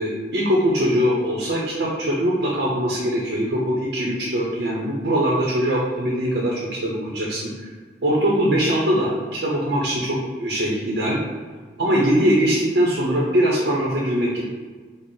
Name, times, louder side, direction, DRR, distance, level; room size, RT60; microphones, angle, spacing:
voice 1, 0.0-7.5 8.0-11.2 11.8-14.4, equal, 85° right, -4 dB, 0.6 m, -22 dB
3.7 x 2.0 x 3.8 m, 1.5 s
head